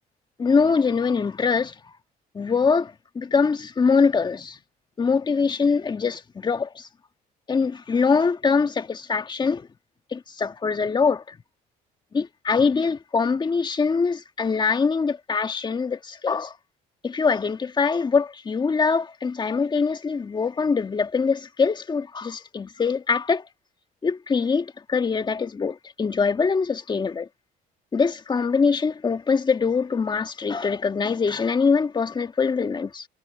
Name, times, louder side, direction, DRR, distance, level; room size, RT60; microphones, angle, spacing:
voice 1, 0.4-1.7 2.3-4.6 5.0-6.9 7.5-9.7 10.1-11.4 12.1-16.6 17.0-23.4 24.0-27.3 27.9-33.1, left 5 dB, 25° left, 1.6 m, -23 dB
cardioid pair, 110°, 17 cm